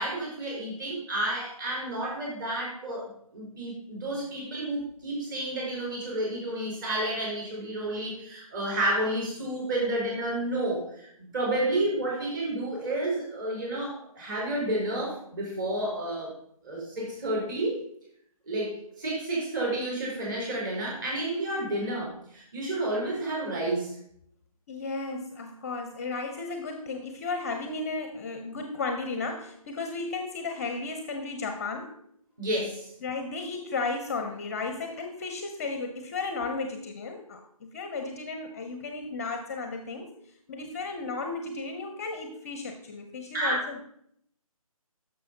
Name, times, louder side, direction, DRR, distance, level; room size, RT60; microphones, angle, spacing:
voice 1, 0.0-11.1 11.3-16.3 16.6-17.8 18.5-24.0 32.4-32.9 43.3-43.6, right 1 dB, 35° right, -3 dB, 4.2 m, -30 dB
voice 2, 24.7-32.0 33.0-40.1 40.5-43.8, left 3 dB, 25° left, 6 dB, 0.7 m, -34 dB
9.9 x 6.7 x 3.9 m, 0.70 s
figure-of-eight pair, 150°, 19 cm